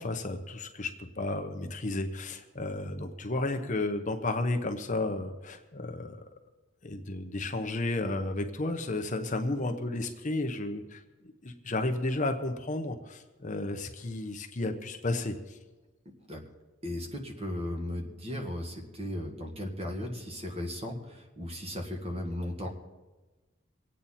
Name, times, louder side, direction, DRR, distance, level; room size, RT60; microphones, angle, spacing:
voice 1, 0.0-6.2 6.8-11.0 11.4-15.6, left 2 dB, 40° left, 5 dB, 1.0 m, -32 dB
voice 2, 16.8-22.7, left 1 dB, 30° right, 2 dB, 1.9 m, -36 dB
24.5 x 9.0 x 4.3 m, 1.2 s
head